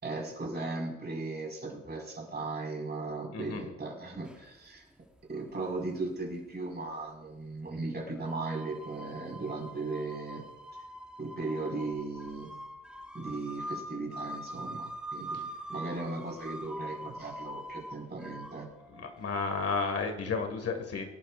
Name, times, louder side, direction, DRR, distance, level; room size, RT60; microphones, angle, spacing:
voice 1, 0.0-4.9 5.3-10.4 11.2-12.5 13.1-18.7, right 3 dB, 35° right, 0 dB, 5.0 m, -37 dB
voice 2, 3.3-3.7 18.9-21.1, left 4 dB, 50° left, 5 dB, 1.9 m, -32 dB
sound 1, 4.2-4.5 5.8-5.9 6.9-7.0 8.2-19.9, right 1 dB, 5° right, 1.1 m, -43 dB
25.0 x 11.5 x 2.5 m, 0.97 s
cardioid pair, 90°, 30 cm